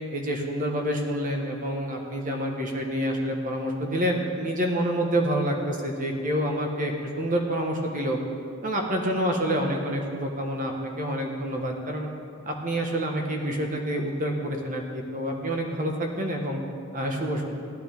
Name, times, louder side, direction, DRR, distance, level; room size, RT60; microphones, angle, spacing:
voice 1, 0.1-8.2 8.6-12.1 12.4-16.6 16.9-17.6, equal, 35° right, 1 dB, 1.3 m, -28 dB
16.5 x 10.0 x 3.5 m, 2.4 s
head